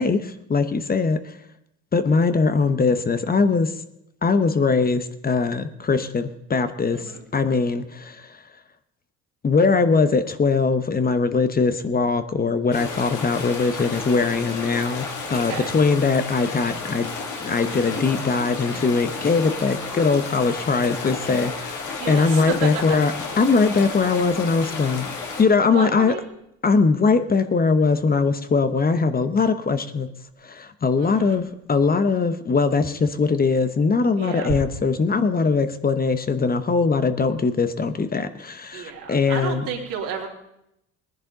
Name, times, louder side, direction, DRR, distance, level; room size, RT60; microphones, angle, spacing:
voice 1, 0.0-1.3 1.9-3.7 4.2-8.3 9.4-17.1 17.4-26.1 26.6-30.1 30.4-39.6, left 4 dB, 30° left, 10 dB, 0.9 m, -21 dB
sound 1, 12.7-25.4, left 4 dB, 65° left, 2.9 m, -32 dB
voice 2, 15.3-15.7 22.0-22.7 25.7-26.2 31.0-31.4 34.2-34.5 38.7-40.3, right 7 dB, 75° right, -1 dB, 3.3 m, -31 dB
19.0 x 10.5 x 3.9 m, 0.81 s
supercardioid pair, 80°, 32 cm